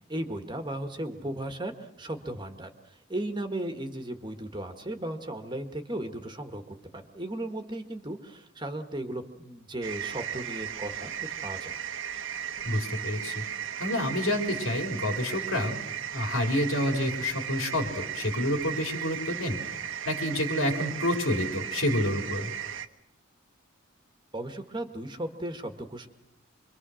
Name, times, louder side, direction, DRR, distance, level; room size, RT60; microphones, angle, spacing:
voice 1, 0.1-11.8 24.3-26.1, right 1 dB, 20° right, 6 dB, 1.6 m, -36 dB
sound 1, 9.8-22.9, right 9 dB, 70° right, 1.3 m, -36 dB
voice 2, 12.6-13.4 13.8-15.8 16.1-19.6 20.1-22.5, left 1 dB, 80° left, 3 dB, 3.7 m, -28 dB
26.5 x 23.0 x 6.4 m, 0.85 s
head